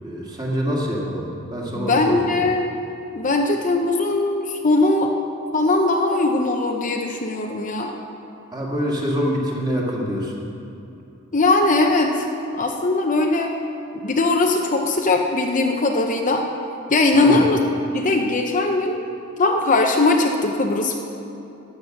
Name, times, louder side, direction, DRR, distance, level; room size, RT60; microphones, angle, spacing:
voice 1, 0.0-2.3 8.5-10.4 17.1-17.4, equal, 20° right, -3 dB, 2.1 m, -25 dB
voice 2, 1.7-2.6 3.1-5.1 5.5-7.9 11.3-12.3 12.5-13.5 14.0-16.4 16.9-17.6 17.9-19.1 19.4-21.0, left 2 dB, 35° left, 2 dB, 0.7 m, -20 dB
13.5 x 10.0 x 6.5 m, 2.8 s
head